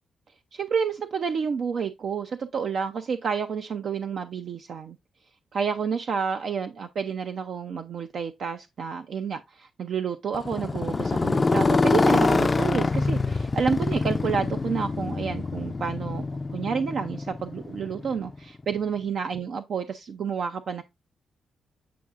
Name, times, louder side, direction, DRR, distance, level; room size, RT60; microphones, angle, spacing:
voice 1, 0.5-5.0 5.5-16.2 16.5-20.8, right 6 dB, 70° right, 0.4 m, -29 dB
Motorcycle, 10.3-18.4, left 3 dB, 30° left, 0.3 m, -25 dB
8.5 x 4.6 x 2.4 m
cardioid pair, 65°, 0 cm